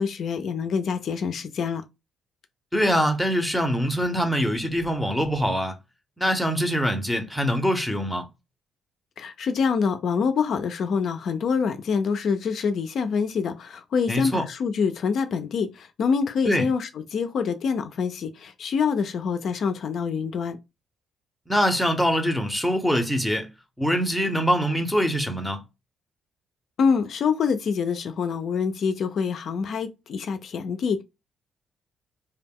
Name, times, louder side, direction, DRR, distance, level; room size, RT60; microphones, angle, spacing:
voice 1, 0.0-1.8 9.2-20.6 26.8-31.0, left 6 dB, 65° left, 0.3 m, -26 dB
voice 2, 2.7-5.7 6.2-8.2 14.1-14.4 16.5-16.7 21.5-23.5 23.8-25.6, equal, ahead, 0.6 m, -23 dB
2.2 x 2.0 x 3.5 m
cardioid pair, 90°, 0 cm